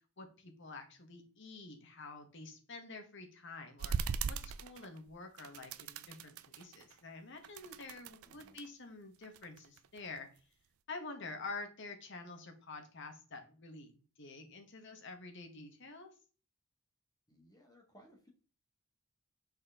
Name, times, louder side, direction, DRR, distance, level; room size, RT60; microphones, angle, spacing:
voice 1, 0.2-10.3 10.9-16.1, left 3 dB, 55° left, 5 dB, 1.3 m, -48 dB
sound 1, 3.8-5.1 5.4-7.0 7.4-8.7 9.2-10.4, right 6 dB, 75° right, 0.4 m, -40 dB
voice 2, 8.2-8.6 17.3-18.3, equal, 15° left, 0 dB, 1.7 m, -62 dB
6.2 x 4.3 x 3.6 m, 0.37 s
head